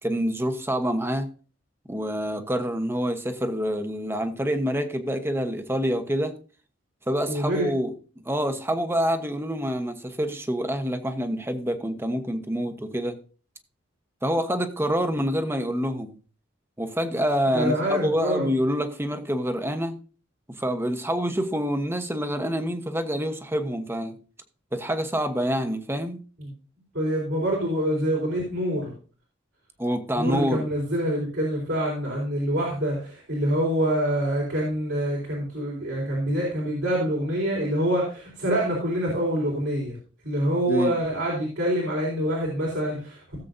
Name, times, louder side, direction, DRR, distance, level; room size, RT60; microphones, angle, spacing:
voice 1, 0.0-1.3 1.9-6.4 7.1-7.9 8.2-13.1 14.2-16.2 16.8-20.0 20.6-24.2 24.7-26.2 29.8-30.7 40.7-41.0, equal, 15° right, 1.1 m, -27 dB
voice 2, 7.3-7.7 17.5-18.5 26.4-26.5 26.9-28.9 30.2-40.0 40.2-43.2, equal, 75° right, 4.3 m, -26 dB
17.5 x 7.5 x 2.7 m
head